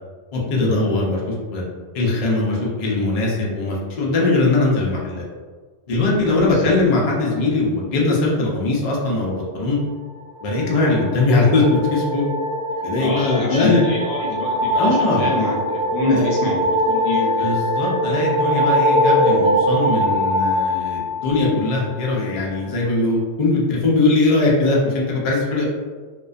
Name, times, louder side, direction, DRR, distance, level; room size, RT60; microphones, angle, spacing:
voice 1, 0.3-1.6 1.9-5.2 5.9-9.8 10.4-12.3 12.8-13.8 14.8-15.3 16.1-16.2 17.4-25.6, left 2 dB, 80° left, -3 dB, 0.3 m, -20 dB
sound 1, 10.3-21.8, equal, 10° left, 0.4 m, -22 dB
voice 2, 13.0-17.5, left 3 dB, 60° left, -3 dB, 0.7 m, -25 dB
2.4 x 2.1 x 2.4 m, 1.5 s
omnidirectional pair, 1.2 m